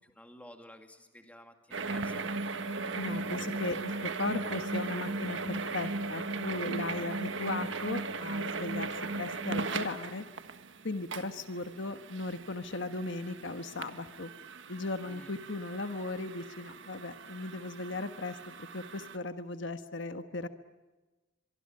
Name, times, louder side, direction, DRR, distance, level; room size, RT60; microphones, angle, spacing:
voice 1, 0.2-2.4 15.0-15.3, left 1 dB, 5° left, 5 dB, 2.3 m, -52 dB
sound 1, 1.7-19.2, right 3 dB, 60° right, 1.5 m, -38 dB
voice 2, 2.9-10.2 10.8-14.3 14.7-20.5, left 2 dB, 60° left, 8 dB, 1.4 m, -37 dB
24.5 x 24.5 x 8.8 m, 1.2 s
head